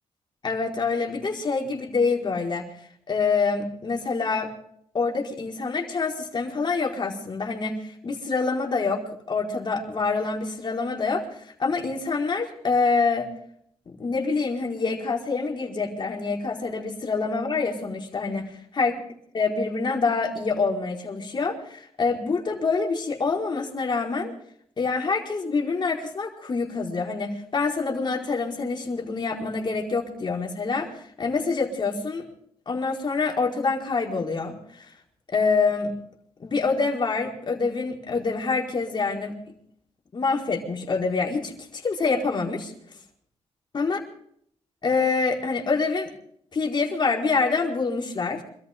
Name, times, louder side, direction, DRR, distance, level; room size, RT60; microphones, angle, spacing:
voice 1, 0.4-2.7 3.1-4.5 4.9-13.3 14.0-19.0 19.3-24.3 24.8-32.2 32.7-34.9 35.3-35.9 36.4-39.4 40.1-42.7 43.7-44.0 44.8-46.1 46.5-48.4, left 4 dB, 45° left, 0 dB, 4.8 m, -26 dB
27.0 x 14.0 x 3.7 m, 0.67 s
cardioid pair, 90°, 11 cm